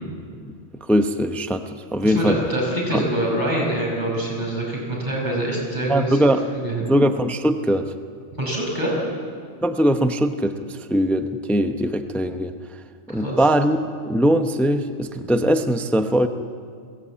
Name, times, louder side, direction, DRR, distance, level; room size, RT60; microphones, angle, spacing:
voice 1, 0.8-2.4 2.9-3.0 5.9-6.4 6.8-7.9 9.6-12.5 13.1-13.8 14.0-16.3, equal, ahead, 7 dB, 0.6 m, -21 dB
voice 2, 2.0-6.2 6.5-6.9 8.3-9.0 13.1-13.4, right 1 dB, 40° right, -3 dB, 6.0 m, -25 dB
21.5 x 17.5 x 8.6 m, 2.1 s
omnidirectional pair, 1.2 m